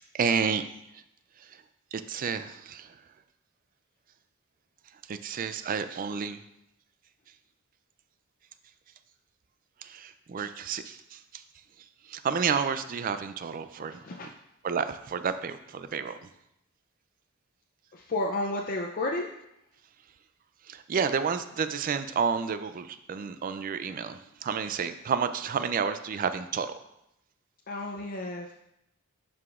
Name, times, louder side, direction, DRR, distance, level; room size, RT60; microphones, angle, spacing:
voice 1, 0.1-0.6 1.9-2.9 5.1-6.4 9.8-11.4 12.1-14.0 14.6-16.1 20.7-26.7, right 6 dB, 40° right, 11 dB, 0.3 m, -30 dB
voice 2, 13.9-14.3 17.9-19.2 27.7-28.5, left 2 dB, 40° left, 1 dB, 0.5 m, -32 dB
11.0 x 4.8 x 2.4 m, 0.83 s
head